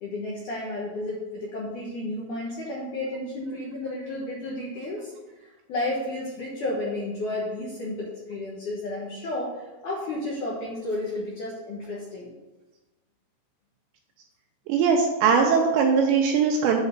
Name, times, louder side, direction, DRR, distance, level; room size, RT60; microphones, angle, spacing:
voice 1, 0.0-5.1 5.4-12.3, left 2 dB, 75° left, -5 dB, 1.8 m, -32 dB
voice 2, 14.7-16.8, right 5 dB, 80° right, 1 dB, 2.7 m, -20 dB
8.1 x 4.0 x 6.6 m, 1.1 s
omnidirectional pair, 5.6 m